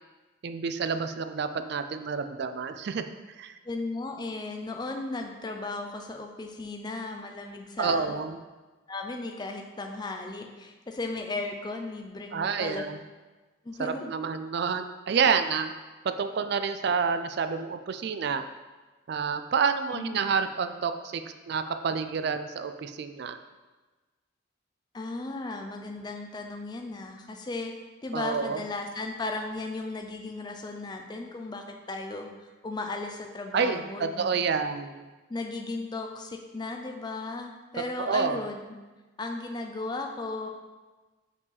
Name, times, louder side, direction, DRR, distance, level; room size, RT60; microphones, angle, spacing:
voice 1, 0.4-3.5 7.8-8.4 12.3-13.0 13.8-15.7 16.0-18.4 19.1-21.2 21.5-23.4 28.1-28.6 33.5-35.0 38.0-38.4, right 5 dB, 50° right, 9 dB, 0.3 m, -29 dB
voice 2, 3.6-8.2 8.9-12.8 13.6-14.1 19.9-20.1 24.9-27.7 28.0-34.3 35.3-38.8 39.2-40.5, left 3 dB, 20° left, 3 dB, 0.4 m, -36 dB
5.6 x 4.7 x 4.0 m, 1.2 s
head